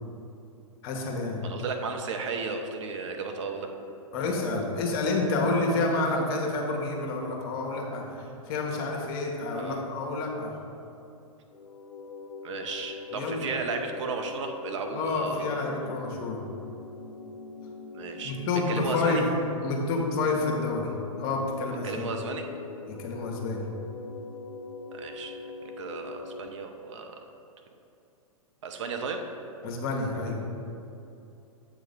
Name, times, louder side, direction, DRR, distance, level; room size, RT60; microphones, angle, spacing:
voice 1, 0.8-1.4 4.1-10.6 13.1-13.5 14.9-16.4 18.2-19.3 19.6-22.1 22.9-23.6 29.6-30.5, left 3 dB, 45° left, 0 dB, 1.2 m, -29 dB
voice 2, 1.4-3.7 9.6-9.8 12.4-15.5 17.9-18.4 18.7-19.2 21.8-22.4 24.9-25.3 25.6-27.1 28.6-29.2, right 4 dB, 60° right, 4 dB, 0.7 m, -34 dB
sound 1, 11.5-26.5, left 5 dB, 75° left, 0.5 m, -42 dB
7.7 x 3.0 x 5.4 m, 2.8 s
hypercardioid pair, 115°, 18 cm